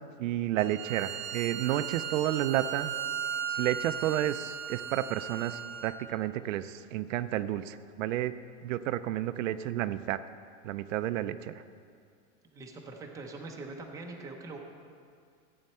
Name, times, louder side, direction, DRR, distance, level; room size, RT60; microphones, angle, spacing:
voice 1, 0.0-2.9 3.5-10.2 10.6-11.6, right 13 dB, 85° right, 12 dB, 0.6 m, -31 dB
Bowed string instrument, 0.6-5.9, right 8 dB, 45° right, 0.8 m, -37 dB
voice 2, 12.5-14.6, right 3 dB, 10° right, 1 dB, 0.7 m, -43 dB
14.0 x 8.8 x 4.3 m, 2.2 s
supercardioid pair, 165°, 37 cm